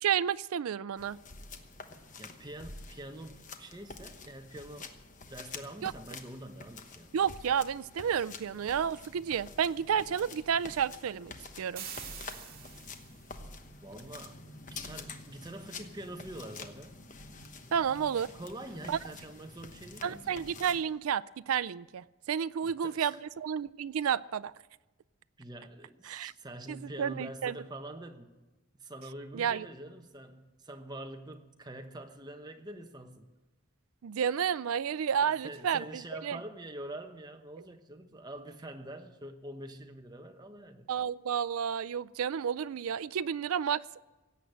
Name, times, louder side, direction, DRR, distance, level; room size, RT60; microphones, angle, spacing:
voice 1, 0.0-1.2 5.8-5.9 7.1-11.8 17.7-18.3 18.9-19.0 20.0-24.5 26.1-26.3 26.7-27.5 29.3-29.7 34.0-36.4 40.9-43.8, right 8 dB, 90° right, 19 dB, 0.4 m, -31 dB
sound 1, 1.0-20.8, left 3 dB, 35° left, 1.1 m, -48 dB
voice 2, 2.2-4.9 5.3-7.1 13.8-14.4 14.7-17.0 18.4-20.4 22.6-23.2 25.4-28.3 28.8-33.3 35.2-40.9, right 1 dB, 20° right, 6 dB, 1.0 m, -45 dB
sound 2, 11.8-13.3, right 8 dB, 45° right, 2.4 m, -44 dB
17.5 x 8.0 x 10.0 m, 1.2 s
head